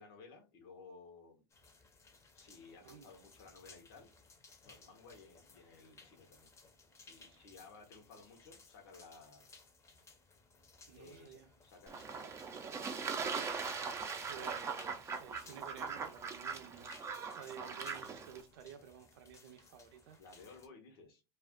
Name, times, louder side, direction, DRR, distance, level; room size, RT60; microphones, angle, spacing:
voice 1, 0.0-1.4 2.3-4.1 4.6-6.5 6.9-9.5 10.9-12.3 13.0-13.3 20.2-21.2, left 4 dB, 70° left, 0.9 m, -57 dB
sound 1, 1.5-20.7, left 3 dB, 20° left, 0.7 m, -61 dB
voice 2, 7.0-7.4 10.9-11.5 14.3-20.2, right 8 dB, 70° right, 0.5 m, -53 dB
Fowl / Bird / Water, 11.9-18.4, right 5 dB, 20° right, 0.5 m, -41 dB
2.4 x 2.3 x 3.5 m
supercardioid pair, 115°, 13 cm